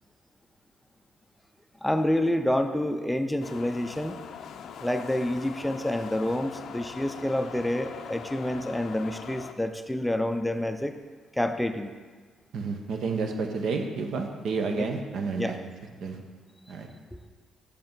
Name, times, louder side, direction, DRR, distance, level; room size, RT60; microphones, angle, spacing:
voice 1, 1.8-4.2 4.8-11.0 11.3-11.9 14.8-14.9 15.4-15.6, left 1 dB, 5° left, 7 dB, 0.4 m, -28 dB
sound 1, 3.4-9.5, left 7 dB, 70° left, 0.4 m, -42 dB
voice 2, 12.5-15.6 16.0-16.2 16.7-16.9, right 4 dB, 70° right, 4 dB, 0.8 m, -30 dB
6.7 x 5.4 x 4.5 m, 1.4 s
cardioid pair, 90°, 0 cm